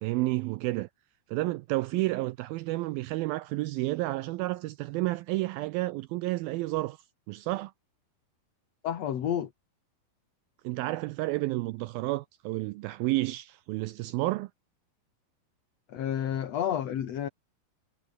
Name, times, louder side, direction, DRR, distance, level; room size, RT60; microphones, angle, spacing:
voice 1, 0.0-0.9 1.3-7.7 10.6-14.5, right 19 dB, 85° right, 2.1 m, -31 dB
voice 2, 8.8-9.5 15.9-17.3, left 9 dB, 50° left, 2.3 m, -30 dB
omnidirectional pair, 4.7 m